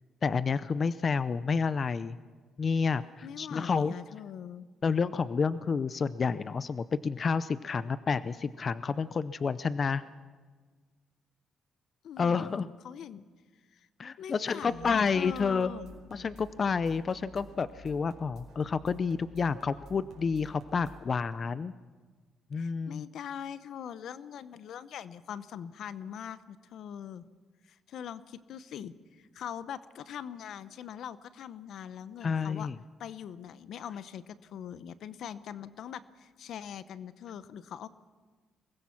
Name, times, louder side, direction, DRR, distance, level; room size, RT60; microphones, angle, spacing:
voice 1, 0.2-2.2 2.6-3.9 4.8-10.0 12.2-12.7 14.0-15.7 16.1-21.7 22.5-23.0 32.2-32.7, left 5 dB, 40° left, 15 dB, 0.6 m, -29 dB
voice 2, 3.2-4.7 12.0-13.2 13.7-13.9 14.2-16.0 22.5-27.3 27.6-32.7 33.0-37.9, left 9 dB, 70° left, 14 dB, 0.8 m, -42 dB
sound 1, 14.5-21.0, right 1 dB, 75° right, 4.5 m, -52 dB
23.5 x 20.0 x 5.9 m, 1.4 s
cardioid pair, 90°, 0 cm